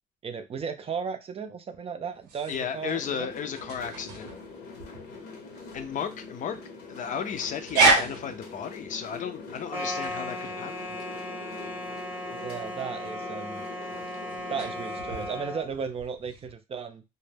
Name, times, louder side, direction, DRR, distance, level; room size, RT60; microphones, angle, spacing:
voice 1, 0.2-3.3 12.3-13.6 14.5-17.0, right 6 dB, 35° right, 8 dB, 0.4 m, -35 dB
sound 1, 2.1-16.5, right 3 dB, 90° right, 0.7 m, -32 dB
voice 2, 2.5-4.3 5.7-6.6 6.9-11.0, left 7 dB, 50° left, 8 dB, 0.5 m, -34 dB
sound 2, 2.7-15.4, left 4 dB, 75° left, 0.8 m, -44 dB
sound 3, 9.7-15.7, left 1 dB, 10° right, 0.9 m, -36 dB
2.1 x 2.0 x 3.3 m, 0.26 s
supercardioid pair, 80°, 17 cm